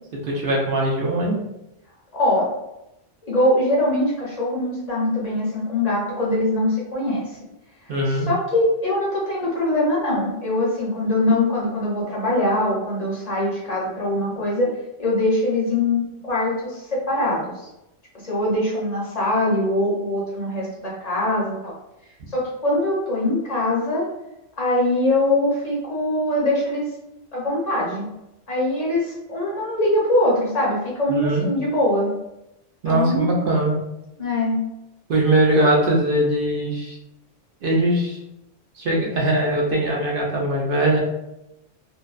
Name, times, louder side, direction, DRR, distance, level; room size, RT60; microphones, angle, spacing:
voice 1, 0.1-1.4 7.9-8.3 31.1-31.5 32.8-33.8 35.1-37.0 37.6-38.2 38.8-41.0, right 1 dB, 60° right, -3 dB, 0.6 m, -21 dB
voice 2, 2.1-2.5 3.2-7.4 8.1-14.7 15.0-17.7 18.2-21.7 22.3-24.0 24.6-26.9 27.3-28.1 28.5-32.1 32.9-33.4 34.2-34.6, left 1 dB, 40° left, -6 dB, 0.7 m, -22 dB
2.5 x 2.1 x 2.3 m, 0.89 s
omnidirectional pair, 1.3 m